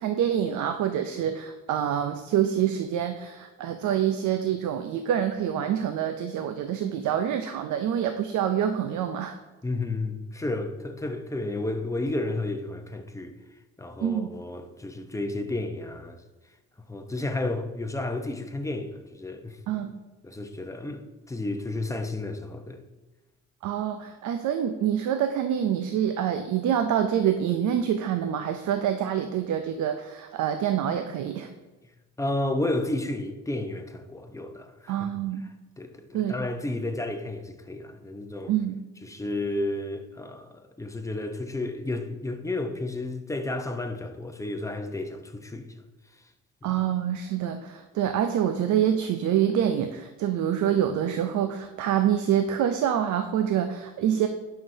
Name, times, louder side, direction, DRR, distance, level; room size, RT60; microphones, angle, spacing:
voice 1, 0.0-9.4 14.0-14.3 19.7-19.9 23.6-31.5 34.9-35.4 36.1-36.3 38.5-38.8 46.6-54.3, right 9 dB, 75° right, 0.6 m, -26 dB
voice 2, 9.6-13.3 13.8-16.2 16.9-19.6 20.2-22.8 32.2-35.1 35.8-38.5 39.0-45.7 46.6-46.8, left 2 dB, 10° left, 0.7 m, -32 dB
11.0 x 5.9 x 2.7 m
cardioid pair, 90°, 30 cm